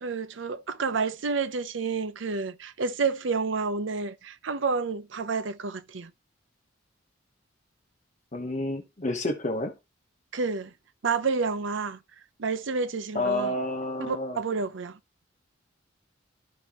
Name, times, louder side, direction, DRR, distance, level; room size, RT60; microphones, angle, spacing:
voice 1, 0.0-6.1 10.3-10.7 11.0-12.0 12.4-13.5 14.0-15.0, right 4 dB, 70° right, 0.7 m, -29 dB
voice 2, 8.3-9.7 13.1-14.4, left 1 dB, 40° left, 1.0 m, -29 dB
12.5 x 5.5 x 3.0 m
head